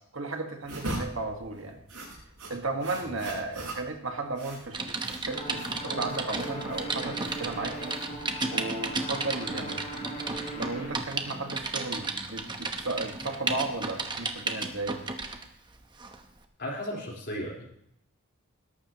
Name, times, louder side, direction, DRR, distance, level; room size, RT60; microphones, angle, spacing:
voice 1, 0.1-1.8 2.5-8.0 8.5-9.8 10.6-15.0, right 3 dB, 65° right, 4 dB, 1.7 m, -34 dB
sound 1, 0.6-8.5, right 1 dB, 80° right, 6.7 m, -41 dB
Typing, 4.7-15.4 16.0-16.2, right 3 dB, 20° right, 1.0 m, -34 dB
sound 2, 5.3-10.9, right 1 dB, 25° left, 5.6 m, -39 dB
voice 2, 16.6-17.7, equal, 50° left, -2 dB, 4.2 m, -35 dB
20.5 x 11.5 x 3.0 m, 0.72 s
head